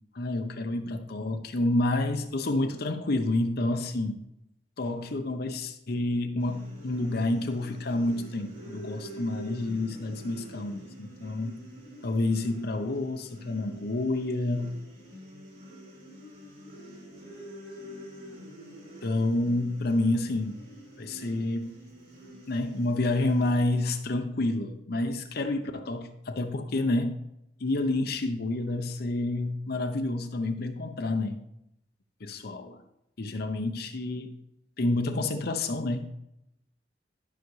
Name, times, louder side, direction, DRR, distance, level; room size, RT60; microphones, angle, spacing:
voice 1, 0.1-4.2 4.8-11.6 12.0-14.7 19.0-20.6 21.0-21.7 22.5-27.2 27.6-31.4 32.2-32.8 33.2-34.3 34.8-36.0, left 2 dB, 60° left, 0.7 m, -29 dB
sound 1, 6.4-23.8, equal, 55° right, 3.0 m, -46 dB
11.5 x 5.8 x 3.2 m
head